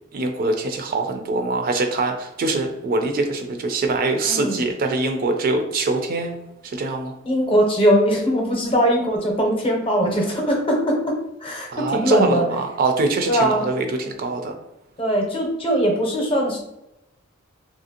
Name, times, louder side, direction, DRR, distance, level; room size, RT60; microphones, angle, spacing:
voice 1, 0.1-6.4 6.6-7.2 11.7-14.5, right 3 dB, 45° right, 5 dB, 0.4 m, -23 dB
voice 2, 4.2-4.6 7.2-12.5 13.2-13.6 15.0-16.6, equal, 25° left, 0 dB, 0.7 m, -21 dB
2.8 x 2.5 x 2.8 m, 0.88 s
head